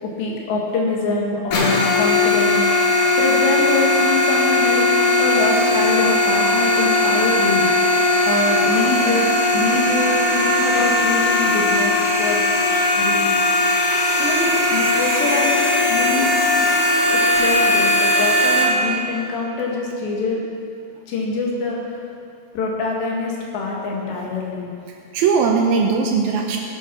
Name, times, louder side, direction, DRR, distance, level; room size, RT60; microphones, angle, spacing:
voice 1, 0.0-2.6 3.2-4.9 5.2-7.7 8.3-11.9 12.2-12.4 13.0-13.2 14.2-15.6 15.9-16.3 17.2-20.4 21.1-21.8 22.5-24.7, left 3 dB, 80° left, -2 dB, 4.2 m, -24 dB
sound 1, 1.5-18.6, left 2 dB, 55° left, 3.0 m, -18 dB
voice 2, 24.0-24.3 25.1-26.6, right 5 dB, 75° right, 1 dB, 2.4 m, -19 dB
18.5 x 7.9 x 6.2 m, 2.4 s
omnidirectional pair, 5.0 m